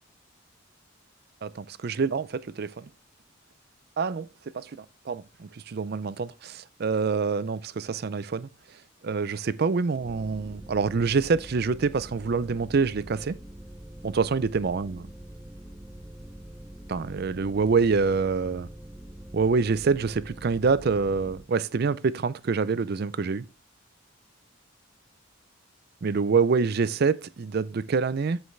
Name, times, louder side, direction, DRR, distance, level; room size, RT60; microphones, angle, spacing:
voice 1, 1.4-2.9 4.0-4.3 4.5-8.5 9.0-13.4 14.0-15.0 16.9-18.7 19.3-23.4 26.0-28.4, right 5 dB, 50° right, 0.4 m, -26 dB
sound 1, 10.0-21.4, right 1 dB, 5° right, 0.6 m, -44 dB
7.9 x 7.9 x 3.3 m
head